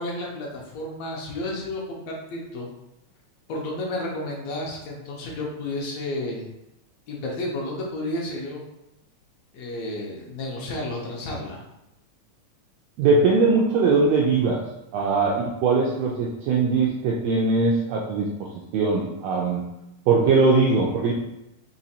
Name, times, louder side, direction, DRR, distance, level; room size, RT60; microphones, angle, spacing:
voice 1, 0.0-2.7 3.5-6.5 7.1-8.6 9.5-11.6, left 1 dB, 70° left, -2 dB, 1.8 m, -31 dB
voice 2, 13.0-14.6 14.9-18.3 18.7-19.6 20.1-21.1, right 4 dB, 80° right, -2 dB, 1.5 m, -20 dB
5.2 x 3.0 x 2.7 m, 0.87 s
omnidirectional pair, 3.4 m